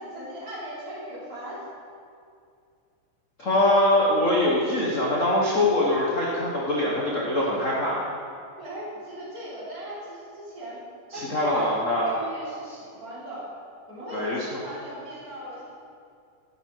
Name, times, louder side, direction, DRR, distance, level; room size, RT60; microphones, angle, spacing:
voice 1, 0.0-1.7 8.6-10.8 11.1-13.5 13.9-15.7, equal, 25° right, -8 dB, 3.7 m, -37 dB
voice 2, 3.4-8.0 11.1-12.1 14.1-14.6, left 1 dB, 80° left, -4 dB, 0.7 m, -23 dB
12.0 x 9.6 x 4.6 m, 2.4 s
omnidirectional pair, 3.6 m